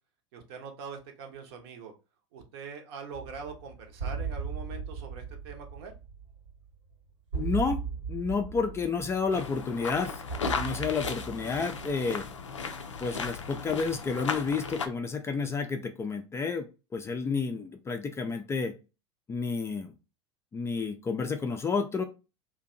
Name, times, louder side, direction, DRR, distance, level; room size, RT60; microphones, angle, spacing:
voice 1, 0.3-1.9 2.3-5.9, right 5 dB, 55° right, 4 dB, 0.7 m, -43 dB
sound 1, 3.1-12.6, right 5 dB, 80° right, 1.1 m, -38 dB
voice 2, 7.3-7.8 8.1-10.2 10.5-12.3 13.0-18.7 19.3-19.9 20.5-22.0, left 5 dB, 15° left, 6 dB, 0.4 m, -30 dB
sound 2, 9.3-14.9, left 5 dB, 85° left, 0.4 m, -35 dB
2.6 x 2.2 x 2.5 m, 0.29 s
figure-of-eight pair, 80°, 15 cm